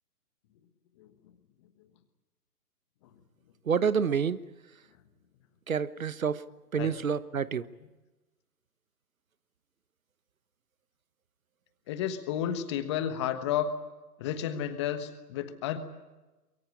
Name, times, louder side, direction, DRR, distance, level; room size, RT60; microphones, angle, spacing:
voice 1, 3.7-4.4 5.7-6.4 6.7-7.7, right 6 dB, 55° right, 16 dB, 1.2 m, -28 dB
voice 2, 11.9-13.7 14.2-15.8, left 10 dB, 15° left, 10 dB, 1.3 m, -31 dB
23.5 x 23.0 x 8.5 m, 1.1 s
figure-of-eight pair, 145°, 48 cm